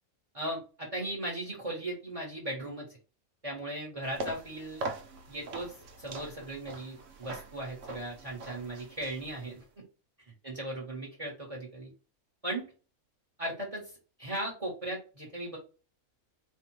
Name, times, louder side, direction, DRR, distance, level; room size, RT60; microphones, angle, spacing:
voice 1, 0.3-2.9 3.4-4.8 5.3-9.6 10.4-11.9 12.4-12.7 13.4-15.6, right 1 dB, 25° right, -1 dB, 1.2 m, -37 dB
sound 1, 4.0-9.7, right 2 dB, 65° right, 1.0 m, -42 dB
4.5 x 2.4 x 3.1 m, 0.34 s
omnidirectional pair, 1.5 m